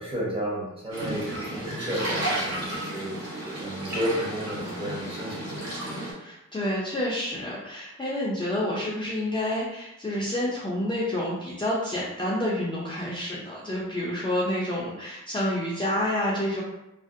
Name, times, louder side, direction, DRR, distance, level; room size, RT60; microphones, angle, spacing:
voice 1, 0.0-3.3 3.6-5.8, equal, 20° right, -6 dB, 0.9 m, -32 dB
sound 1, 0.9-6.1, right 1 dB, 60° right, 0.9 m, -32 dB
voice 2, 6.1-16.6, left 1 dB, 15° left, -7 dB, 0.4 m, -29 dB
2.5 x 2.1 x 2.5 m, 0.93 s
wide cardioid pair, 100°, 30 cm